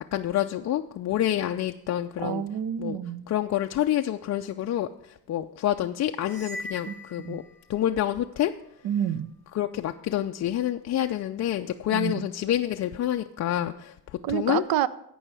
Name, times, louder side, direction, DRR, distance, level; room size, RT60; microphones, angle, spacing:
voice 1, 0.0-2.4 2.8-3.0 3.3-7.4 7.7-8.5 9.5-14.6, left 12 dB, 40° left, 5 dB, 0.4 m, -28 dB
voice 2, 2.2-3.2 6.9-7.4 8.8-9.3 11.9-12.2 14.2-14.9, right 10 dB, 50° right, 17 dB, 0.7 m, -28 dB
sound 1, 6.2-8.1, left 1 dB, 75° right, 3.4 m, -41 dB
16.0 x 5.5 x 4.8 m, 0.80 s
supercardioid pair, 85°, 45 cm